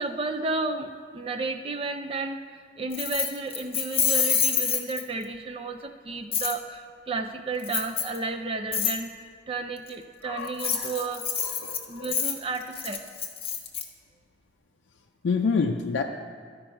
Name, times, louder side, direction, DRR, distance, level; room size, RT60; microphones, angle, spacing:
voice 1, 0.0-11.2 11.9-13.0, right 3 dB, 30° right, 6 dB, 0.4 m, -32 dB
Keys jangling, 2.9-5.2 6.3-6.5 7.6-8.2 8.7-8.9 10.4-13.8, left 7 dB, 30° left, 0.8 m, -27 dB
voice 2, 10.2-11.1 11.4-12.1 15.2-16.0, left 5 dB, 90° left, 2 dB, 0.4 m, -28 dB
13.5 x 5.3 x 4.4 m, 2.1 s
head